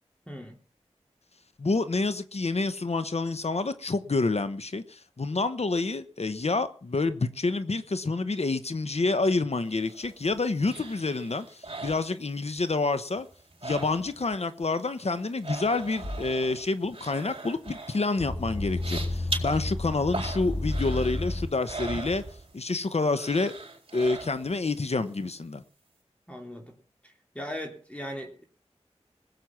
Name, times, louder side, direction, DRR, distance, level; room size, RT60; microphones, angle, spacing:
voice 1, 0.3-0.6 26.3-26.7 27.0-28.4, equal, 10° left, 3.2 m, -39 dB
voice 2, 1.6-13.3 13.6-22.2 22.5-23.5 23.9-25.6, left 3 dB, 65° left, 1.0 m, -28 dB
sound 1, 9.7-12.7 13.0-14.4 14.6-22.8 23.1-24.7 25.1-25.2, right 3 dB, 50° right, 4.2 m, -40 dB
sound 2, 16.0-16.2 18.2-21.5, left 2 dB, 35° left, 2.7 m, -31 dB
20.0 x 7.8 x 5.9 m
wide cardioid pair, 45°, 12 cm